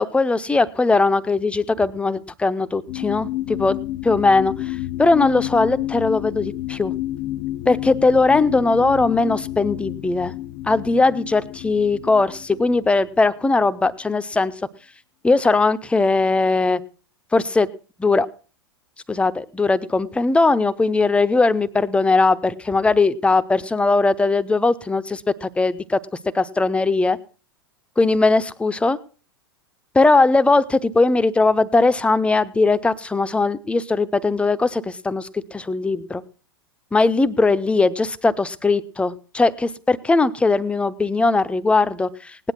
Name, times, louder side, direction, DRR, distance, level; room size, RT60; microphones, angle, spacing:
voice 1, 0.0-3.8 4.0-6.9 7.7-10.3 10.7-14.5 15.2-16.8 17.3-17.7 18.0-18.3 19.1-26.0 26.3-27.2 28.0-29.0 29.9-36.2 36.9-42.5, left 3 dB, 10° left, 15 dB, 0.9 m, -19 dB
sound 1, 2.9-12.9 13.5-13.6, left 15 dB, 40° left, 0.7 m, -30 dB
18.5 x 10.5 x 6.0 m, 0.38 s
figure-of-eight pair, 90°, 13 cm